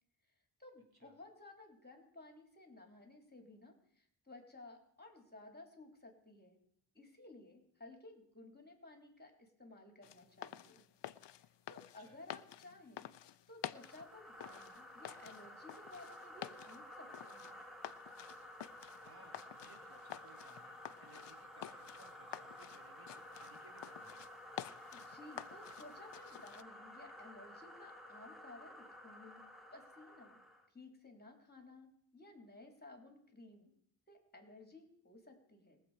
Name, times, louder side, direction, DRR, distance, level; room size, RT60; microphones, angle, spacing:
voice 1, 0.6-6.6 6.9-10.8 11.7-13.1 13.5-17.6 24.9-30.4 30.7-33.7 34.1-35.8, left 2 dB, 20° left, 3 dB, 3.2 m, -57 dB
sound 1, 10.0-26.6, left 11 dB, 65° left, 0.6 m, -51 dB
sound 2, 13.7-30.7, left 1 dB, ahead, 2.3 m, -53 dB
voice 2, 19.0-24.3, right 2 dB, 50° right, 2 dB, 3.4 m, -63 dB
22.0 x 7.6 x 4.8 m, 0.66 s
cardioid pair, 60°, 47 cm